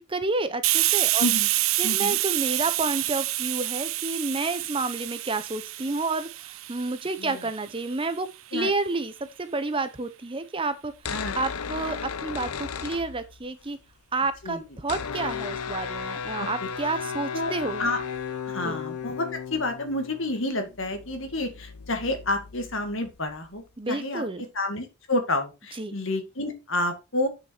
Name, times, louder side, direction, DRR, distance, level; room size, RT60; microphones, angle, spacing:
voice 1, 0.0-1.2 1.8-8.3 8.5-9.1 9.4-10.9 11.3-13.8 14.1-17.8 18.6-18.8 23.8-24.4 25.8-26.0, right 3 dB, 25° right, 0.7 m, -30 dB
Hiss, 0.6-8.0, right 17 dB, 65° right, 0.5 m, -27 dB
voice 2, 1.2-1.5 1.8-2.2 7.2-7.4 8.5-8.7 11.1-11.4 14.4-14.6 16.4-16.5 17.3-17.5 17.8-18.0 18.5-24.2 24.5-27.3, left 2 dB, 60° left, 2.2 m, -29 dB
sound 1, 10.9-13.6 13.9-14.0 14.2-23.6, left 6 dB, 85° left, 0.8 m, -35 dB
8.1 x 6.7 x 4.4 m
head